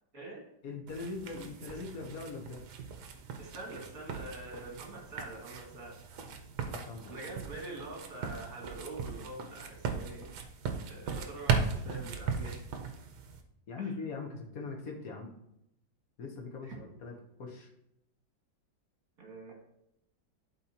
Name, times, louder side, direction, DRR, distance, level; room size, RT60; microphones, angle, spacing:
voice 1, 0.6-2.6 6.7-7.1 13.7-15.3 16.2-17.7, left 4 dB, 50° left, 1 dB, 1.4 m, -41 dB
sound 1, 0.9-13.4, right 6 dB, 65° right, 1.3 m, -38 dB
voice 2, 3.4-6.0 7.1-10.3 10.8-12.7 13.8-13.9 16.6-16.8 19.2-19.5, right 2 dB, 50° right, -1 dB, 2.5 m, -45 dB
12.0 x 4.2 x 2.9 m, 0.80 s
omnidirectional pair, 2.1 m